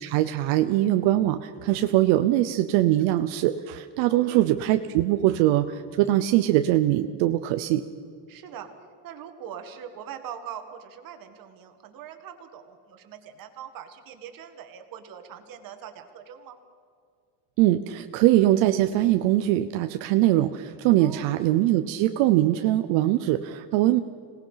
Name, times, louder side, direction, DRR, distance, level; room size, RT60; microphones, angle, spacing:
voice 1, 0.0-7.8 17.6-24.0, right 14 dB, 75° right, 9 dB, 0.9 m, -22 dB
voice 2, 4.1-4.5 8.3-8.7 9.0-16.6 21.0-21.4, right 9 dB, 45° right, 7 dB, 2.0 m, -42 dB
26.0 x 18.5 x 5.8 m, 2.2 s
cardioid pair, 165°, 46 cm